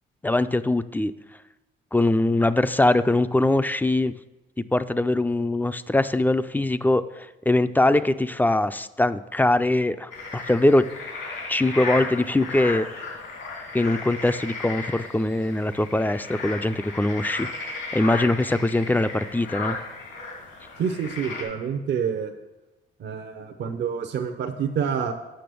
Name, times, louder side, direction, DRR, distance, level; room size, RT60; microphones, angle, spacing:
voice 1, 0.2-1.1 1.9-4.1 4.6-7.0 7.5-10.9 11.5-12.9 13.7-17.5 17.9-19.8, left 2 dB, 10° left, 13 dB, 0.3 m, -22 dB
sound 1, 10.1-21.4, left 3 dB, 80° left, 2.7 m, -35 dB
voice 2, 20.8-22.3 23.0-25.1, right 7 dB, 65° right, 5 dB, 0.7 m, -27 dB
7.8 x 6.1 x 6.8 m, 1.0 s
cardioid pair, 90°, 20 cm